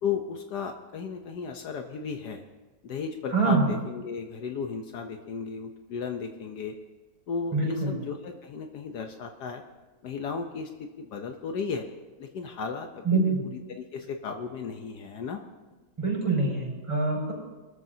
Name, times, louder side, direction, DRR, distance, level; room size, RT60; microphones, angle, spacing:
voice 1, 0.0-2.4 2.8-6.7 7.3-9.6 10.0-11.8 12.2-13.2 13.7-15.4, left 5 dB, 70° left, 5 dB, 1.4 m, -35 dB
voice 2, 3.3-3.7 7.5-7.9 13.0-13.4 16.0-17.3, right 3 dB, 15° right, -3 dB, 6.1 m, -25 dB
24.0 x 13.5 x 2.8 m, 1.2 s
omnidirectional pair, 1.9 m